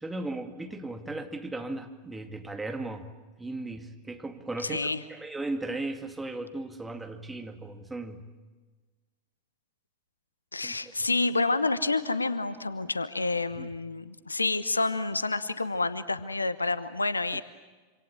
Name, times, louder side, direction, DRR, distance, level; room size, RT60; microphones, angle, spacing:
voice 1, 0.0-3.1 3.4-8.3 10.6-11.1 13.5-13.7, right 2 dB, 10° right, 5 dB, 2.2 m, -37 dB
voice 2, 4.6-5.0 10.5-17.4, left 3 dB, 80° left, 15 dB, 1.1 m, -28 dB
27.0 x 26.5 x 7.5 m, 1.3 s
figure-of-eight pair, 90°, 0 cm